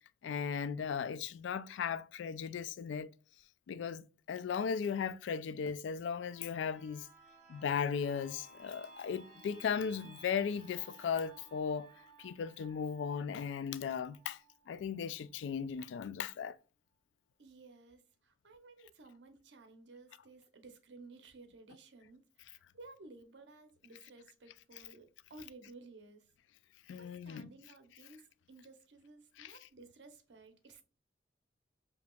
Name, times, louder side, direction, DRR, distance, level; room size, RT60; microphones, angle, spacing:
voice 1, 0.2-3.1 3.7-4.0 4.3-7.1 7.5-11.9 12.2-14.4 14.7-16.6 26.9-27.5 29.4-29.6, left 7 dB, 85° left, 0.3 m, -37 dB
sound 1, 5.9-15.5 15.9-16.0, right 3 dB, 50° right, 1.6 m, -59 dB
voice 2, 17.4-26.3 27.0-30.8, right 3 dB, 70° right, 0.7 m, -56 dB
5.1 x 2.8 x 2.2 m
head